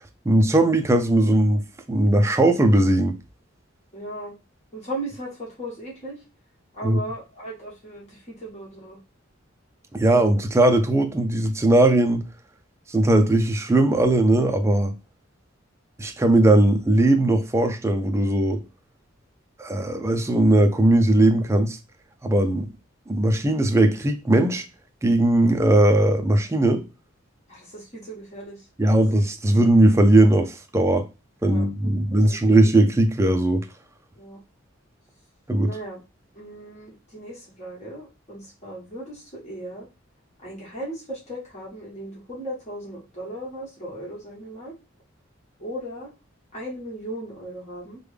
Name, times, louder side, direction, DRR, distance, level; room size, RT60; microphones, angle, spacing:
voice 1, 0.3-1.6 1.9-3.2 6.8-7.0 9.9-12.2 12.9-14.9 16.0-18.6 19.6-21.8 22.2-22.7 23.1-24.7 25.0-26.8 28.8-31.0 31.4-33.6 35.5-35.7, right 1 dB, 15° right, 0.4 m, -19 dB
voice 2, 3.9-4.3 4.7-6.2 6.7-9.0 27.5-29.0 31.4-31.7 32.3-32.4 34.2-34.4 35.6-36.0 36.3-39.9 40.4-44.7 45.6-46.1 46.5-48.0, right 1 dB, 35° left, 1.5 m, -37 dB
3.3 x 2.2 x 3.3 m
head